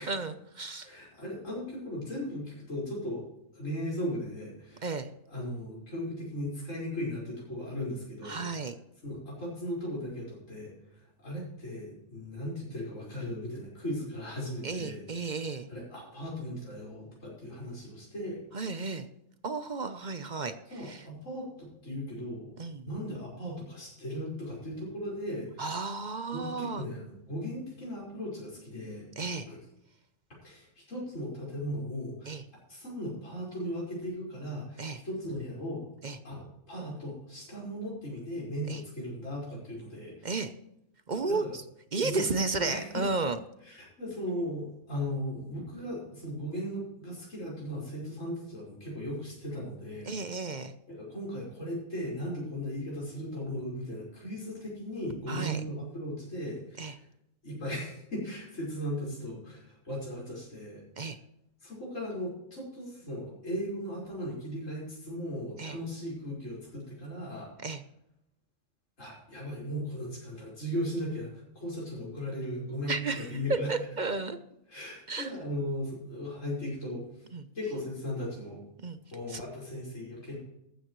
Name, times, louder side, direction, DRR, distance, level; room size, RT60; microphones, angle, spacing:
voice 1, 0.0-0.9 4.8-5.1 8.2-8.7 14.6-15.7 18.5-19.1 19.4-20.6 20.8-21.0 22.6-22.9 25.6-26.8 29.2-29.5 32.3-32.4 34.8-35.0 36.0-36.2 38.7-38.8 40.2-40.5 41.1-41.4 41.9-43.4 50.1-50.7 55.3-55.6 56.8-56.9 61.0-61.2 65.6-65.8 67.6-67.8 72.9-74.4 75.1-75.3 77.3-77.4 78.8-79.0 79.3-79.4, right 3 dB, 40° right, 10 dB, 0.8 m, -33 dB
voice 2, 0.8-3.3 3.5-4.9 5.3-8.4 9.0-18.4 20.7-22.5 22.9-25.7 26.3-29.1 29.5-29.6 30.4-32.4 32.7-35.8 36.2-40.3 41.3-41.6 42.0-42.3 42.6-43.0 43.6-50.1 50.9-57.0 57.4-60.8 61.6-67.5 69.0-73.7 74.7-77.3 77.5-78.6 79.1-80.4, equal, 75° left, -5 dB, 5.5 m, -37 dB
15.0 x 12.5 x 3.2 m, 0.83 s
omnidirectional pair, 1.3 m